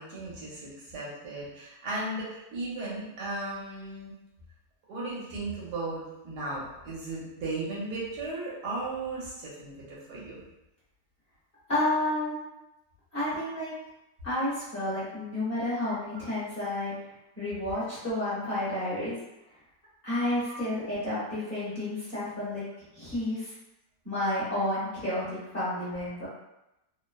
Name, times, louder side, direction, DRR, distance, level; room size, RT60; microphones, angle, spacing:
voice 1, 0.0-4.1 4.9-10.4 20.5-20.6, right 2 dB, 80° right, -6 dB, 1.4 m, -36 dB
voice 2, 11.7-12.4 13.1-13.7 14.2-16.9 17.4-19.2 20.0-22.6 22.9-23.5 24.0-26.3, left 1 dB, 40° left, -11 dB, 1.2 m, -30 dB
3.1 x 2.0 x 2.2 m, 0.91 s
omnidirectional pair, 1.7 m